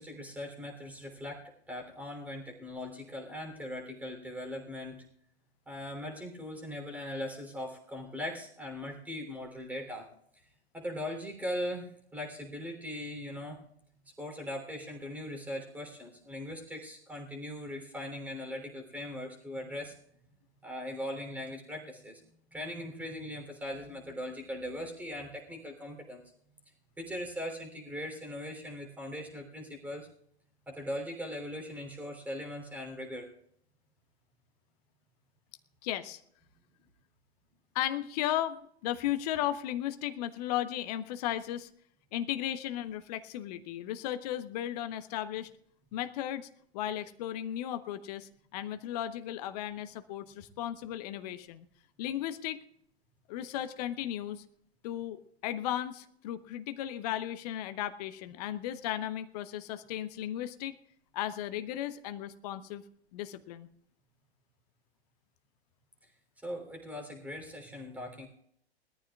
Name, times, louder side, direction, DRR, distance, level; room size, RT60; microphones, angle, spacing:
voice 1, 0.0-5.0 5.7-10.1 10.7-13.6 14.2-20.0 20.6-22.2 22.5-26.2 27.0-30.1 30.7-33.3 66.4-68.3, left 1 dB, 5° right, 3 dB, 3.3 m, -40 dB
voice 2, 35.8-36.2 37.7-41.7 42.1-45.5 45.9-46.5 46.7-51.7 52.0-52.6 53.3-54.4 54.8-60.7 61.1-62.8 63.1-63.7, left 12 dB, 40° left, 10 dB, 1.1 m, -35 dB
21.5 x 13.5 x 2.4 m, 0.66 s
figure-of-eight pair, 110°, 32 cm